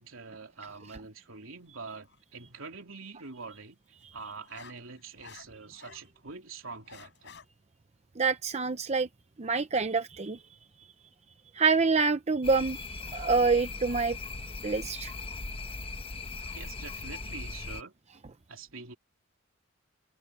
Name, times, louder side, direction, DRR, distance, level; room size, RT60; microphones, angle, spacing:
voice 1, 0.0-3.8 4.1-7.3 16.5-17.9 18.5-19.0, right 4 dB, 70° right, 3.2 m, -45 dB
sound 1, 1.9-2.2 4.0-6.1 6.5-7.4, left 6 dB, 60° left, 6.1 m, -51 dB
voice 2, 8.2-9.1 9.4-10.4 11.5-14.2 14.6-15.1, right 4 dB, 30° right, 0.7 m, -26 dB
sound 2, 12.4-17.8, left 3 dB, 30° left, 1.1 m, -39 dB
head